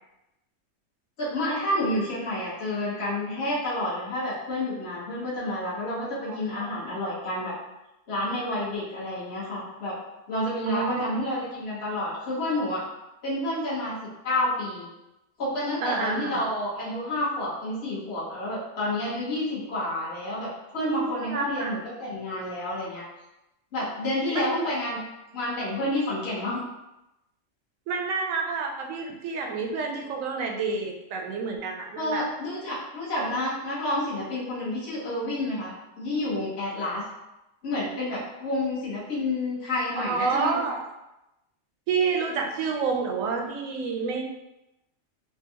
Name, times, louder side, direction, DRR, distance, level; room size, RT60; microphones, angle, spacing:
voice 1, 1.2-7.5 8.1-9.9 10.3-12.8 13.2-14.9 15.4-23.0 23.7-25.0 25.3-26.6 32.0-37.0 37.6-40.6, left 1 dB, 55° left, -8 dB, 1.3 m, -29 dB
voice 2, 6.3-6.7 10.7-11.5 15.8-16.4 20.8-21.8 24.3-24.7 27.9-32.3 33.2-33.3 40.0-40.8 41.9-44.2, right 5 dB, 85° right, 2 dB, 1.0 m, -29 dB
3.8 x 2.3 x 2.8 m, 0.94 s
omnidirectional pair, 1.3 m